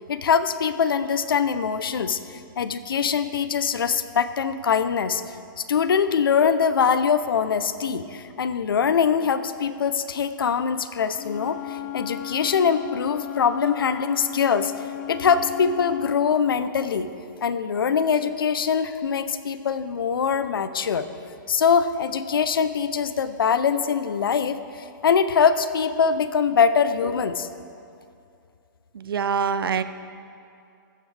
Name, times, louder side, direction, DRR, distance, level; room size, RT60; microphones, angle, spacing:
voice 1, 0.0-2.2 2.6-17.1 17.4-21.1 21.5-27.5, left 6 dB, 85° left, 12 dB, 0.6 m, -23 dB
Wind instrument woodwind instrument, 11.1-16.2, left 15 dB, 45° left, 0.6 m, -35 dB
voice 2, 28.9-29.8, right 6 dB, 85° right, 12 dB, 0.6 m, -24 dB
14.5 x 9.3 x 3.4 m, 2.5 s
hypercardioid pair, 145°, 12 cm